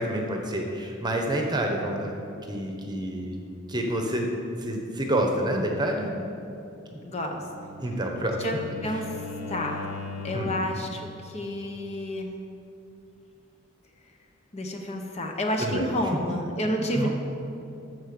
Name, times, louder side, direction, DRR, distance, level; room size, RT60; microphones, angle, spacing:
voice 1, 0.0-2.2 2.5-3.3 3.7-4.2 4.6-6.1 6.9-7.0 7.8-8.4 10.3-10.6 15.6-15.8 16.9-17.1, right 1 dB, 20° right, 2 dB, 1.0 m, -28 dB
voice 2, 7.0-7.4 8.4-9.9 10.2-12.3 14.5-17.1, equal, 30° left, 2 dB, 0.9 m, -30 dB
Bowed string instrument, 7.1-10.7, left 3 dB, 70° left, 1.2 m, -39 dB
13.0 x 4.6 x 6.7 m, 2.8 s
head